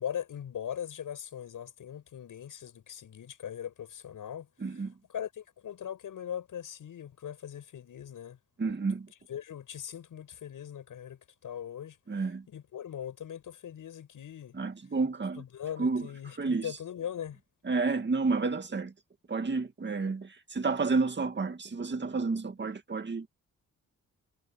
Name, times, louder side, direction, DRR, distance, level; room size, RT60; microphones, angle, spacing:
voice 1, 0.0-4.5 5.1-8.7 9.3-12.0 12.5-14.6 15.4-17.4, left 9 dB, 85° left, 6.4 m, -40 dB
voice 2, 4.6-4.9 8.6-9.1 12.1-12.4 14.5-15.4 15.8-16.1 16.4-16.7 17.6-18.9 19.3-23.3, right 4 dB, 35° right, 2.1 m, -30 dB
wide cardioid pair, 110°, 31 cm